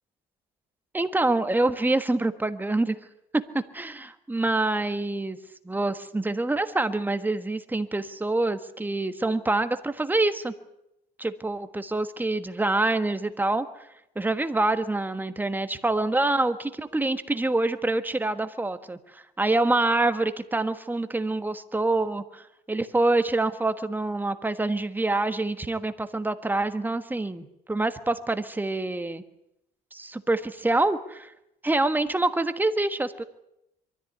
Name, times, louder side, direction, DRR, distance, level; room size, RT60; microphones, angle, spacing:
voice 1, 0.9-3.0 3.3-5.4 5.6-10.5 11.2-13.7 14.1-22.4 22.7-29.2 29.9-31.3 31.6-33.2, right 2 dB, 10° right, 10 dB, 1.4 m, -26 dB
23.0 x 14.0 x 9.6 m, 0.84 s
cardioid pair, 110°, 17 cm